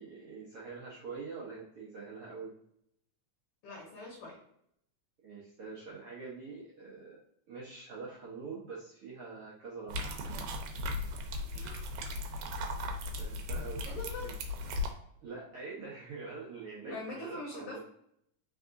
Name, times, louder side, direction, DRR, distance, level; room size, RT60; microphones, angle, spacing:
voice 1, 0.0-2.5 5.2-7.2 7.5-10.0 13.2-14.3 15.2-17.8, right 4 dB, 70° right, -5 dB, 1.4 m, -45 dB
voice 2, 3.6-4.4 11.5-11.9 13.8-14.3 16.9-17.8, left 2 dB, 70° left, -3 dB, 1.4 m, -43 dB
sound 1, 9.9-14.9, left 2 dB, 90° right, 2.1 m, -37 dB
4.0 x 3.5 x 2.5 m, 0.73 s
omnidirectional pair, 3.4 m